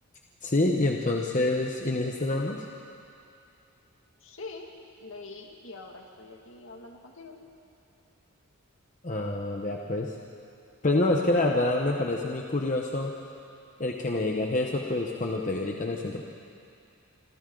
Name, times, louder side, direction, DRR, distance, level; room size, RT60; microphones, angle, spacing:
voice 1, 0.4-2.7 9.0-10.2 10.8-13.1 13.8-16.2, left 2 dB, 35° left, 0 dB, 1.0 m, -27 dB
voice 2, 4.2-4.7 5.0-7.4, left 3 dB, 60° left, 1 dB, 2.2 m, -44 dB
28.0 x 25.5 x 3.9 m, 2.6 s
head